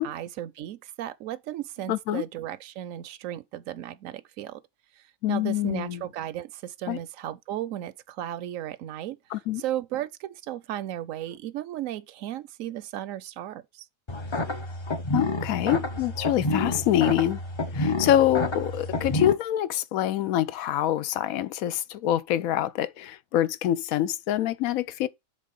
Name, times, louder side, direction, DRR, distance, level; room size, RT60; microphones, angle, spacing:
voice 1, 0.0-4.6 5.0-13.9, right 12 dB, 75° right, 0.9 m, -35 dB
voice 2, 1.9-2.2 5.2-6.0 6.9-7.0 9.3-9.6 15.1-17.4 17.7-25.1, left 12 dB, 85° left, 1.1 m, -25 dB
sound 1, 14.1-19.3, left 2 dB, 30° left, 0.6 m, -29 dB
7.4 x 3.6 x 5.2 m
omnidirectional pair, 1.4 m